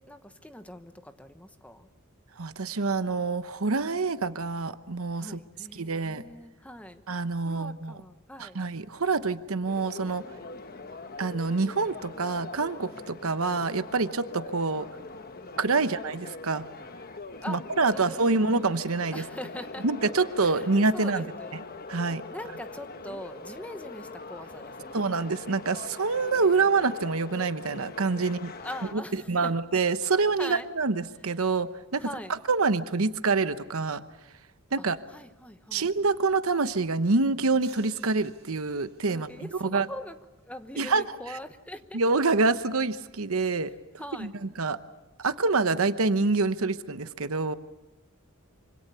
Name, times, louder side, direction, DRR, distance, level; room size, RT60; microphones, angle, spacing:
voice 1, 0.0-1.9 5.2-7.0 7.4-8.6 10.4-10.9 15.8-15.9 17.4-17.6 17.9-18.5 19.1-19.9 20.4-21.5 22.3-25.1 26.1-26.4 28.6-29.5 30.0-30.7 32.0-32.3 35.1-35.9 39.1-40.2 40.4-42.0 44.0-44.3, left 1 dB, 5° left, 9 dB, 1.1 m, -42 dB
voice 2, 2.4-5.4 5.8-6.2 7.1-8.0 8.4-10.2 11.2-14.9 15.6-16.7 17.5-19.2 19.8-21.2 21.9-22.2 24.9-28.5 28.9-29.0 29.3-32.1 32.5-34.0 34.7-35.0 35.7-39.3 39.6-39.9 40.8-41.0 41.9-43.7 44.2-44.8 45.2-47.5, right 3 dB, 80° right, 11 dB, 1.0 m, -26 dB
sound 1, 9.7-28.9, left 3 dB, 45° left, 1.1 m, -42 dB
sound 2, 37.6-39.4, right 8 dB, 55° right, 5.1 m, -55 dB
26.0 x 25.5 x 6.9 m, 1.1 s
head